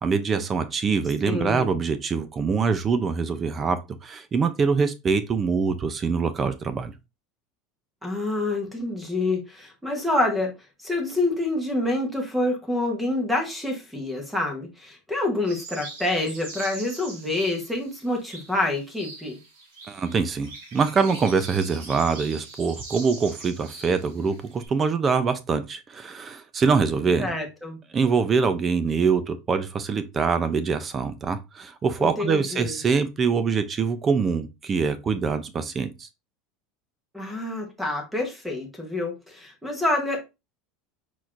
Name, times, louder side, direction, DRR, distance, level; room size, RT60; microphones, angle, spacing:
voice 1, 0.0-6.9 19.9-27.3 27.9-36.1, right 5 dB, 20° right, 0.4 m, -24 dB
voice 2, 1.2-1.7 8.0-10.5 10.8-19.4 27.2-27.8 32.0-32.8 37.1-40.3, left 2 dB, 5° right, 1.0 m, -27 dB
sound 1, 15.4-24.7, right 3 dB, 80° right, 2.4 m, -42 dB
4.5 x 4.0 x 2.5 m
supercardioid pair, 165°, 0 cm